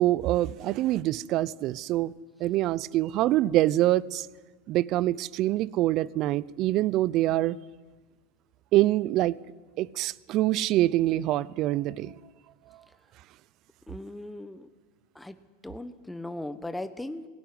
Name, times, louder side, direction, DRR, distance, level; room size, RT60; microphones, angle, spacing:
voice 1, 0.0-2.1 2.4-4.3 4.7-7.6 8.7-9.4 9.8-12.1, right 15 dB, 50° right, 0.6 m, -25 dB
voice 2, 13.9-14.7 15.1-15.4 15.6-17.3, left 1 dB, 5° left, 1.0 m, -38 dB
19.0 x 17.0 x 9.7 m
hypercardioid pair, 100°, 0 cm